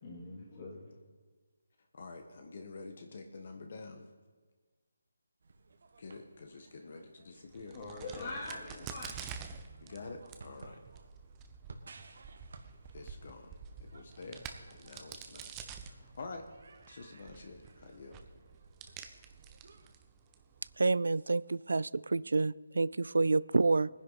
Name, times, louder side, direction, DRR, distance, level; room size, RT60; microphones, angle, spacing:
voice 1, 0.0-0.9 7.7-9.2, left 2 dB, 35° left, -2 dB, 3.1 m, -43 dB
voice 2, 1.9-4.1 6.0-7.8 9.8-10.8 12.9-16.4 16.8-18.2, left 3 dB, 50° left, 5 dB, 1.3 m, -48 dB
sound 1, 5.4-19.9, right 3 dB, 60° right, 1.5 m, -58 dB
Crack, 7.5-20.8, right 7 dB, 15° right, 0.8 m, -49 dB
voice 3, 20.8-23.9, right 3 dB, 75° right, 20 dB, 0.3 m, -28 dB
18.5 x 10.5 x 4.1 m, 1.4 s
figure-of-eight pair, 160°, 0 cm